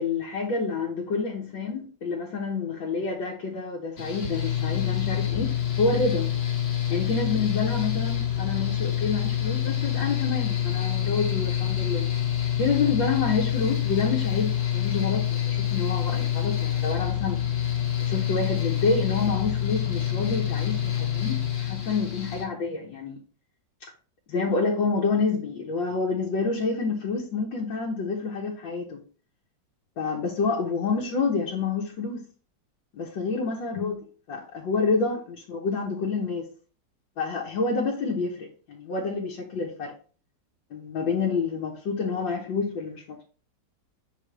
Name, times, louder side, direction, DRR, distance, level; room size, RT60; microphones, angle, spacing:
voice 1, 0.0-6.3 6.9-12.1 12.6-17.4 18.1-23.2 24.3-29.0 30.0-32.3 32.9-34.0 34.3-36.5 37.2-39.9 40.7-43.2, left 4 dB, 90° left, 1.8 m, -28 dB
Mechanical fan, 4.0-22.4, left 10 dB, 55° left, 1.7 m, -27 dB
6.1 x 3.4 x 5.0 m
omnidirectional pair, 2.0 m